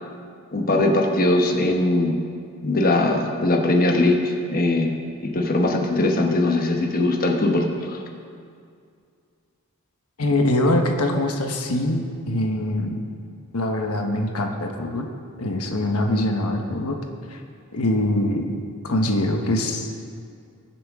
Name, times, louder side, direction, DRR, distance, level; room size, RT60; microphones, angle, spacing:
voice 1, 0.5-2.1 2.6-4.9 5.2-8.0, left 2 dB, 40° left, 2 dB, 1.1 m, -20 dB
voice 2, 10.2-13.0 13.5-15.1 15.4-17.0 17.3-17.4 17.7-18.5 18.8-19.9, left 1 dB, 90° left, 3 dB, 1.1 m, -23 dB
21.5 x 7.4 x 3.6 m, 2.3 s
head